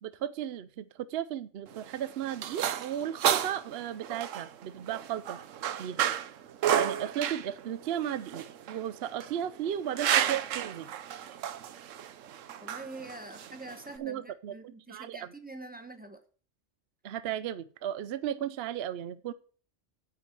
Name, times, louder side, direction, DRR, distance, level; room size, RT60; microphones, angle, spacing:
voice 1, 0.0-5.4 5.8-6.0 6.7-10.9 14.0-14.5 14.9-15.3 17.0-19.3, right 10 dB, 65° right, 14 dB, 0.7 m, -35 dB
sound 1, 1.7-14.0, right 10 dB, 90° right, 1.1 m, -32 dB
voice 2, 12.6-16.2, right 2 dB, 10° right, 7 dB, 1.1 m, -45 dB
9.7 x 4.7 x 7.4 m, 0.41 s
omnidirectional pair, 1.3 m